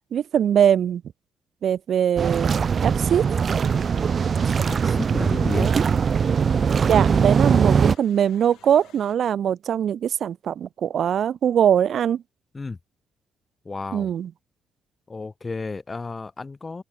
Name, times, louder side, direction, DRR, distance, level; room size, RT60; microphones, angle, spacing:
voice 1, 0.1-1.0 1.6-2.5 2.8-3.3 5.5-5.7 6.9-12.2 13.9-14.3, right 9 dB, 60° right, 0.4 m, -22 dB
sound 1, 2.2-8.0, right 6 dB, 45° right, 1.0 m, -21 dB
sound 2, 3.0-9.2, left 13 dB, 80° left, 5.3 m, -54 dB
voice 2, 4.7-5.7 12.5-12.8 13.6-14.1 15.1-16.8, left 3 dB, 25° left, 2.4 m, -32 dB
cardioid pair, 90°, 0 cm